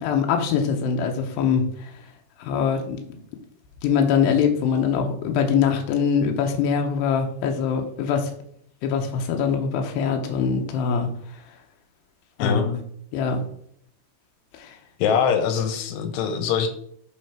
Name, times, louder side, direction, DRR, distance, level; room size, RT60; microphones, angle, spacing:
voice 1, 0.0-1.9 2.4-3.0 3.8-8.3 8.8-11.1 12.4-12.8 13.1-13.4 14.6-14.7, left 6 dB, 75° left, 3 dB, 2.5 m, -23 dB
voice 2, 15.0-16.7, left 7 dB, 90° left, 7 dB, 2.9 m, -23 dB
8.1 x 3.8 x 4.4 m, 0.66 s
omnidirectional pair, 4.8 m